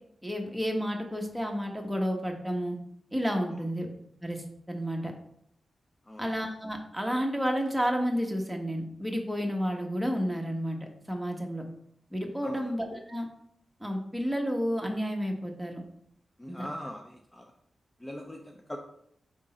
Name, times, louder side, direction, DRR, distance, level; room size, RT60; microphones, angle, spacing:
voice 1, 0.2-2.8 3.1-3.9 4.2-5.1 6.2-11.7 12.1-13.3 13.8-15.8 16.5-16.7, equal, 5° right, 1 dB, 1.2 m, -31 dB
voice 2, 12.4-12.7 16.4-17.5 18.0-18.8, left 1 dB, 20° left, 2 dB, 0.6 m, -41 dB
4.9 x 3.6 x 5.4 m, 0.70 s
cardioid pair, 80°, 0 cm